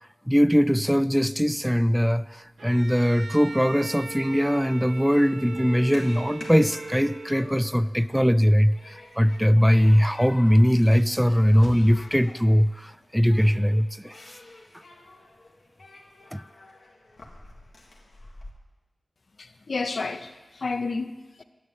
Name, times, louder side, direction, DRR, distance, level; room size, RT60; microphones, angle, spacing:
voice 1, 0.3-14.1 16.3-16.4, equal, ahead, 0.3 m, -21 dB
Bowed string instrument, 2.6-7.8, right 3 dB, 70° right, 0.5 m, -39 dB
Human group actions, 4.2-18.5, left 2 dB, 85° left, 1.7 m, -48 dB
sound 1, 10.9-13.0, left 2 dB, 35° left, 0.9 m, -47 dB
voice 2, 19.4-21.4, left 3 dB, 65° left, 0.7 m, -31 dB
9.6 x 7.2 x 9.1 m
wide cardioid pair, 75°, 0 cm